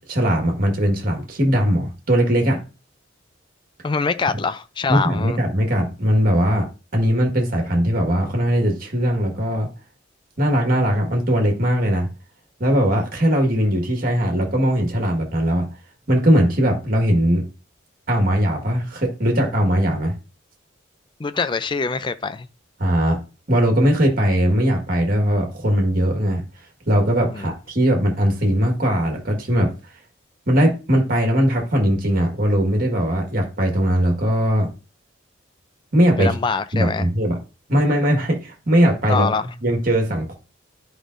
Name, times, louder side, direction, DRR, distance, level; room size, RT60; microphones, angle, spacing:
voice 1, 0.1-2.6 4.9-9.7 10.4-12.1 12.6-15.7 16.1-17.5 18.1-20.1 22.8-23.2 23.5-26.4 26.9-29.7 30.5-34.7 35.9-36.3 36.7-37.4 37.7-39.3 39.6-40.3, equal, 45° right, 1.6 m, -19 dB
voice 2, 3.8-5.4 21.2-22.5 27.3-27.5 36.2-37.1 39.1-39.5, left 4 dB, 25° left, 0.3 m, -24 dB
11.0 x 5.0 x 2.5 m
head